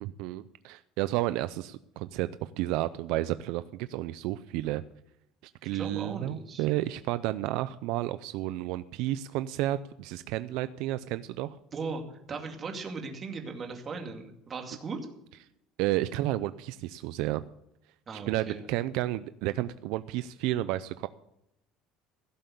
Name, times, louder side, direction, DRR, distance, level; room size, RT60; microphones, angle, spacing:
voice 1, 0.0-4.8 5.4-11.6 15.8-17.4 18.3-21.1, right 15 dB, 70° right, 13 dB, 0.5 m, -31 dB
voice 2, 5.7-6.7 11.7-12.0 12.3-15.0 18.1-18.7, right 4 dB, 25° right, 3 dB, 2.3 m, -38 dB
16.5 x 7.6 x 7.0 m, 0.79 s
cardioid pair, 165°, 0 cm